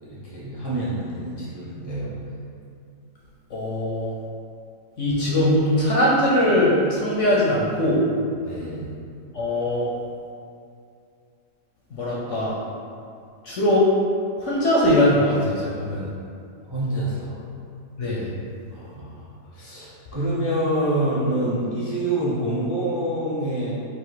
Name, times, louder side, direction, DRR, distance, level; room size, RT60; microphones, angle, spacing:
voice 1, 0.0-2.1 8.3-8.9 16.6-17.3 18.7-19.2 19.5-23.7, right 1 dB, 30° right, -8 dB, 0.5 m, -27 dB
voice 2, 3.5-4.1 5.0-8.0 9.3-9.9 11.9-12.5 13.4-13.9 14.4-16.1 18.0-18.3, left 1 dB, 60° left, -5 dB, 0.8 m, -21 dB
5.0 x 2.6 x 4.0 m, 2.4 s
omnidirectional pair, 1.8 m